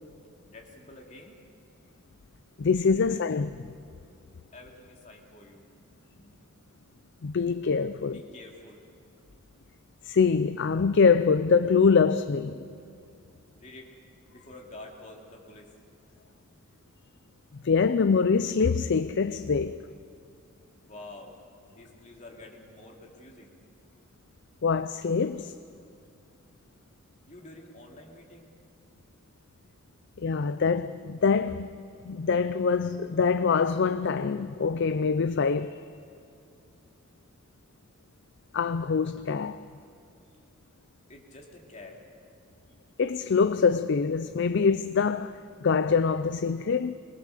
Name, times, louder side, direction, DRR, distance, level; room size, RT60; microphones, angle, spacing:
voice 1, 0.5-1.4 4.5-6.3 8.0-8.8 13.5-13.9 14.3-15.7 20.7-21.3 21.7-23.8 27.3-28.5 41.1-42.0, left 2 dB, 35° left, 2.7 m, -48 dB
voice 2, 2.6-3.6 7.2-8.2 10.0-12.6 17.6-19.9 24.6-25.5 30.2-31.7 32.0-35.8 38.5-39.6 43.0-47.0, left 5 dB, 55° left, 0.5 m, -24 dB
22.5 x 20.0 x 6.7 m
head